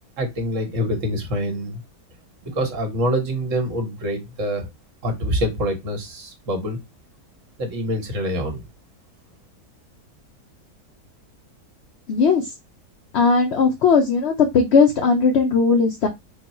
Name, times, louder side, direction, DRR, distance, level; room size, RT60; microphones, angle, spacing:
voice 1, 0.2-1.8 2.4-4.7 5.0-6.8 7.6-8.6, equal, 55° right, 5 dB, 1.4 m, -25 dB
voice 2, 12.1-12.5 13.1-16.1, left 5 dB, 60° left, 4 dB, 0.7 m, -18 dB
3.8 x 2.2 x 4.1 m, 0.20 s
omnidirectional pair, 1.7 m